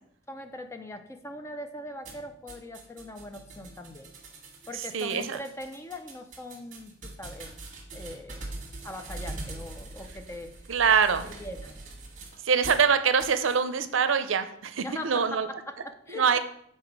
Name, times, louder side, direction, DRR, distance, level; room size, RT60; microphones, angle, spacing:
voice 1, 0.3-4.1 4.7-7.7 7.9-8.5 8.8-10.6 11.2-11.8 14.8-16.4, left 1 dB, 15° left, 7 dB, 0.4 m, -41 dB
sound 1, 2.0-12.9 13.2-13.6, right 2 dB, 40° right, 1.5 m, -43 dB
voice 2, 4.7-5.4 10.7-11.3 12.4-15.5 16.1-16.4, right 6 dB, 70° right, 10 dB, 0.5 m, -24 dB
6.8 x 4.2 x 4.6 m, 0.69 s
head